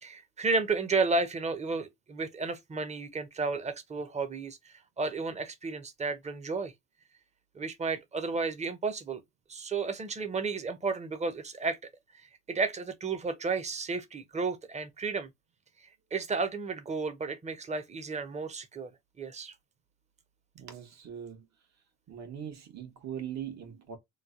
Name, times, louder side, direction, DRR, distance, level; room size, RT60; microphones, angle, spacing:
voice 1, 0.0-6.7 7.5-9.2 9.5-11.8 12.1-15.3 16.1-18.9 19.2-19.5, right 4 dB, 20° right, 0.7 m, -32 dB
voice 2, 20.5-21.5 22.1-24.0, right 9 dB, 60° right, 1.2 m, -41 dB
3.1 x 2.1 x 3.7 m
cardioid pair, 90°, 30 cm